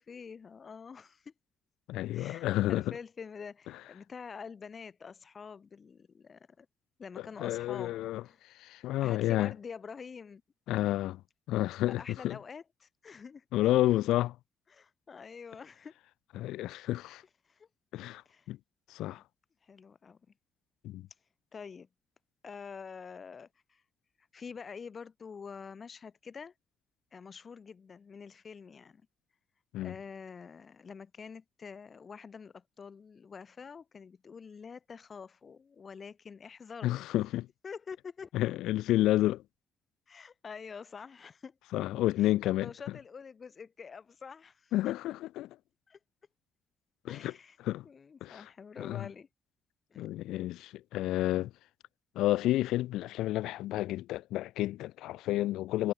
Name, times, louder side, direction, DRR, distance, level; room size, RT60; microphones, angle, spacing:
voice 1, 0.0-1.3 2.1-6.7 7.0-8.4 9.0-10.4 12.0-13.4 14.7-15.9 17.5-17.7 18.2-18.5 19.1-19.2 19.6-20.2 21.5-21.9 22.4-23.8 24.3-26.5 27.1-29.0 29.8-37.0 37.6-38.3 40.1-41.6 42.2-44.9 45.9-46.0 47.1-47.6 47.8-49.3 49.9-50.1, left 6 dB, 40° left, 6.6 m, -47 dB
voice 2, 1.9-3.0 7.4-8.2 8.6-9.5 10.7-11.2 11.5-12.4 13.5-14.3 16.4-17.2 17.9-18.2 18.5-18.6 18.9-19.2 20.8-21.0 29.7-29.9 36.8-37.5 38.3-39.4 41.7-42.7 44.7-45.5 47.0-47.3 47.6-47.8 48.2-48.4 48.8-49.1 50.0-51.5 52.2-55.9, left 15 dB, 90° left, 0.4 m, -30 dB
cardioid pair, 90°, 0 cm